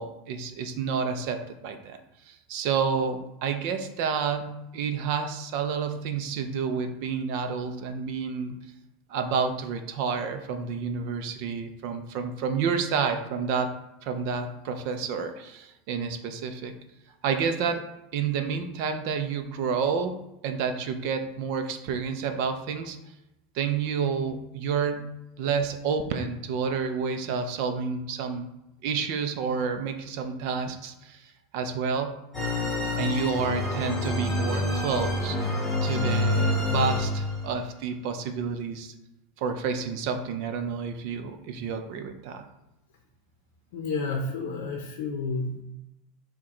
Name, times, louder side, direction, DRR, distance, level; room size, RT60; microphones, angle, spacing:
voice 1, 0.0-2.0 2.3-8.6 9.1-13.7 14.0-16.7 17.2-17.8 18.1-20.1 20.4-23.0 23.5-28.5 28.8-32.2 33.0-35.5 35.8-38.9 39.4-42.4, right 6 dB, 60° right, 7 dB, 0.4 m, -29 dB
sound 1, 32.3-37.6, left 2 dB, 10° left, 1.1 m, -27 dB
voice 2, 43.7-45.6, left 3 dB, 75° left, 2 dB, 0.6 m, -30 dB
4.6 x 2.2 x 3.8 m, 0.89 s
supercardioid pair, 130°, 0 cm